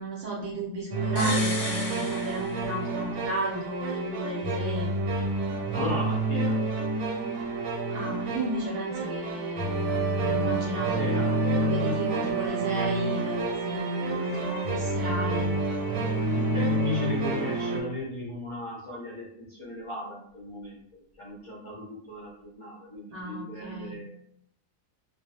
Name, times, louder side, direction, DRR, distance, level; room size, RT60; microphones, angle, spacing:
voice 1, 0.0-4.9 7.9-15.5 23.1-24.0, right 1 dB, 65° right, -3 dB, 0.6 m, -34 dB
sound 1, 0.9-17.8, right 2 dB, 90° right, 1.0 m, -28 dB
sound 2, 1.2-3.1 3.4-3.5, left 2 dB, 65° left, 0.8 m, -34 dB
voice 2, 5.7-6.6 10.9-11.3 16.3-24.2, equal, 40° left, -6 dB, 0.4 m, -37 dB
2.2 x 2.0 x 2.7 m, 0.68 s
omnidirectional pair, 1.4 m